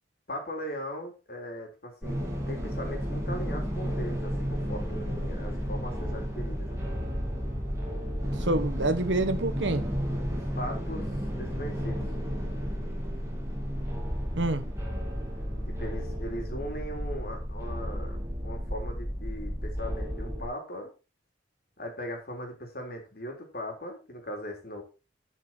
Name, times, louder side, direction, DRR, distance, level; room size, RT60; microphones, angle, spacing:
voice 1, 0.3-6.8 10.3-11.1 11.4-12.0 15.7-20.9 21.8-24.8, equal, 55° left, 3.4 m, -39 dB
sound 1, 2.0-20.5, equal, 15° right, 3.5 m, -32 dB
voice 2, 8.4-9.8 14.4-14.6, right 2 dB, 80° right, 1.2 m, -27 dB
11.5 x 5.9 x 4.4 m
head